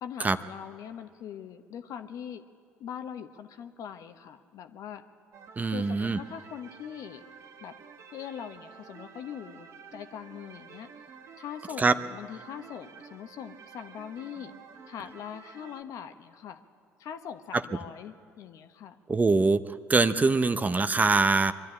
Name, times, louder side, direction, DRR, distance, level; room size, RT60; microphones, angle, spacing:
voice 1, 0.0-2.4 2.8-5.0 5.7-7.2 7.6-7.7 8.1-10.9 11.4-14.5 14.9-16.6 17.0-19.0, left 9 dB, 60° left, 9 dB, 1.1 m, -42 dB
sound 1, 5.3-15.8, right 6 dB, 55° right, 1.4 m, -50 dB
voice 2, 5.6-6.2 11.8-11.9 17.5-17.6 19.1-19.6 19.9-21.5, right 3 dB, 25° right, 12 dB, 0.8 m, -23 dB
23.0 x 12.0 x 9.7 m, 2.2 s
hypercardioid pair, 60°, 6 cm